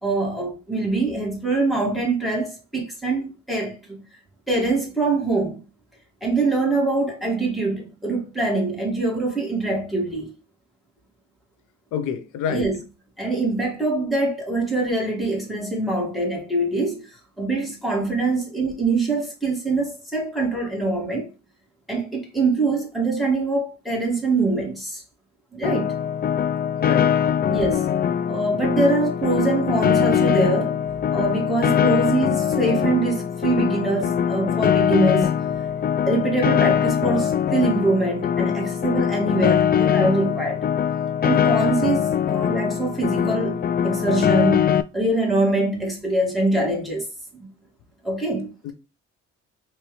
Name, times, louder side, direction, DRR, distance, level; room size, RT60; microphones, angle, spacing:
voice 1, 0.0-4.0 4.5-5.6 6.2-10.3 12.5-12.8 13.2-17.1 17.4-21.3 21.9-25.0 25.5-26.0 27.5-27.9 28.3-30.8 31.1-35.3 36.1-40.6 41.2-47.1 47.4-47.5 48.0-48.6, right 2 dB, ahead, 2.1 m, -24 dB
voice 2, 11.9-12.7 26.8-27.1 48.6-48.7, left 8 dB, 90° left, 0.8 m, -27 dB
Piano, 25.6-44.8, left 8 dB, 35° left, 0.4 m, -22 dB
4.4 x 3.0 x 3.2 m
cardioid pair, 90°, 30 cm